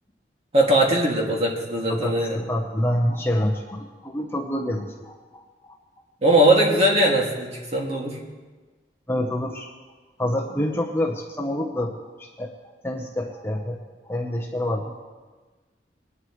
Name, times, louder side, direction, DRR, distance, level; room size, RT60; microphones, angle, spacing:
voice 1, 0.5-2.4 6.2-8.2, right 1 dB, 35° right, -2 dB, 2.3 m, -20 dB
voice 2, 1.9-5.8 9.1-9.7 10.2-12.5 12.8-13.8 14.1-15.0, left 1 dB, 15° left, 1 dB, 0.9 m, -27 dB
21.0 x 11.0 x 3.2 m, 1.3 s
head